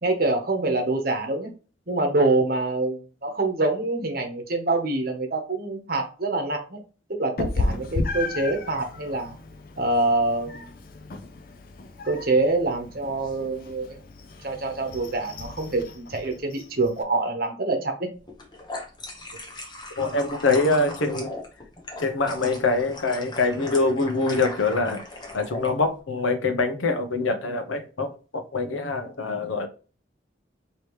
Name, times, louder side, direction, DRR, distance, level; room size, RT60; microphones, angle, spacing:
voice 1, 0.0-1.5 1.9-6.8 7.1-9.4 9.8-10.7 12.0-13.9 14.4-17.9, right 2 dB, 50° right, 1.0 m, -25 dB
Meow, 7.4-17.0, left 2 dB, 50° left, 0.5 m, -34 dB
sound 1, 18.3-25.7, left 2 dB, 20° left, 0.8 m, -38 dB
voice 2, 20.0-21.3 22.0-25.0 25.3-29.7, left 3 dB, 85° left, 0.8 m, -24 dB
4.9 x 2.9 x 3.1 m
head